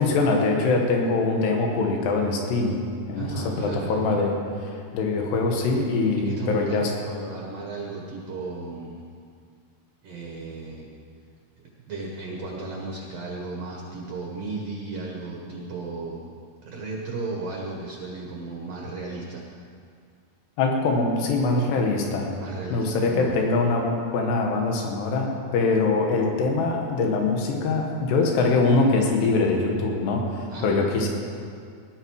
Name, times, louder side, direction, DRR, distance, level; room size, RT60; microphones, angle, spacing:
voice 1, 0.0-2.8 3.1-4.4 4.9-6.9 20.6-22.3 22.7-31.1, left 3 dB, 85° left, 1 dB, 3.6 m, -23 dB
voice 2, 3.1-3.9 6.2-9.1 10.0-10.9 11.9-16.3 16.6-19.4 22.4-23.3 30.5-30.8, right 3 dB, 55° right, -2 dB, 2.0 m, -34 dB
18.5 x 11.5 x 4.8 m, 2.2 s
omnidirectional pair, 4.7 m